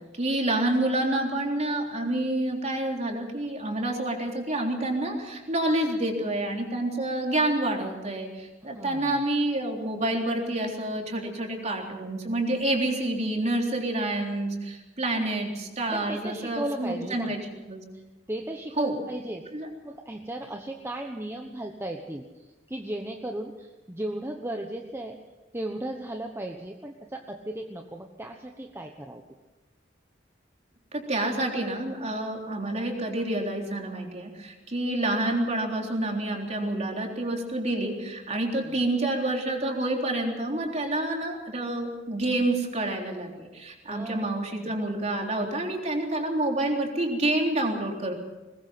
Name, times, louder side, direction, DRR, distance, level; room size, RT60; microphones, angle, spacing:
voice 1, 0.1-17.4 17.7-17.8 18.8-18.9 19.5-19.7 30.9-48.1, right 1 dB, 35° right, 1 dB, 3.7 m, -28 dB
voice 2, 8.6-9.2 15.9-17.3 17.9-18.0 18.3-19.4 19.8-25.2 25.5-29.2 38.6-38.8 43.9-44.8, right 1 dB, 15° right, 3 dB, 1.1 m, -36 dB
21.0 x 21.0 x 5.9 m, 1.1 s
head